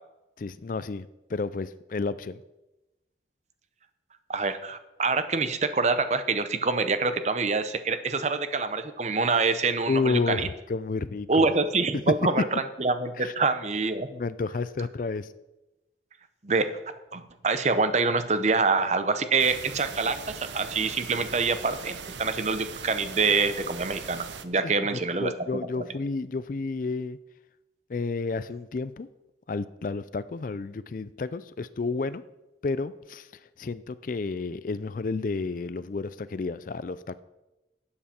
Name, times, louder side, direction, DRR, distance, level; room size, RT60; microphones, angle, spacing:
voice 1, 0.4-2.4 9.9-11.5 11.9-12.1 13.2-13.3 14.1-15.3 24.6-27.2 27.9-29.1 29.5-32.2 32.6-33.3 33.6-37.2, left 4 dB, 50° left, 15 dB, 0.4 m, -31 dB
voice 2, 4.3-10.5 11.3-12.4 12.8-14.1 16.4-16.7 17.1-25.3, right 4 dB, 40° right, 10 dB, 0.8 m, -26 dB
sound 1, 19.4-24.4, right 6 dB, 90° right, 0.8 m, -40 dB
12.5 x 8.7 x 4.4 m, 0.97 s
head